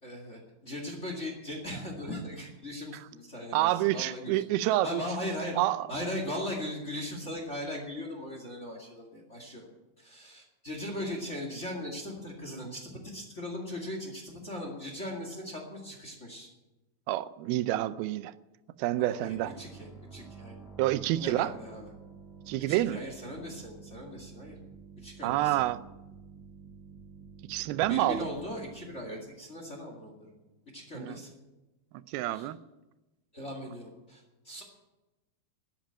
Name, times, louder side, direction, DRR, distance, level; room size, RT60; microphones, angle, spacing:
voice 1, 0.0-4.4 4.8-5.6 5.9-9.6 10.0-16.5 19.0-20.5 21.2-21.9 22.7-24.5 25.0-25.6 27.9-30.3 30.7-31.3 32.3-32.5 33.3-34.6, left 1 dB, 25° left, 2 dB, 1.8 m, -39 dB
voice 2, 3.5-5.0 5.6-5.9 17.1-18.3 18.8-19.5 20.8-21.5 22.5-23.0 25.2-25.8 27.5-28.3 30.9-31.2 32.1-32.6, right 15 dB, 90° right, 15 dB, 2.5 m, -28 dB
sound 1, 18.9-30.4, right 5 dB, ahead, 1.7 m, -51 dB
12.5 x 9.1 x 9.1 m, 1.1 s
omnidirectional pair, 4.2 m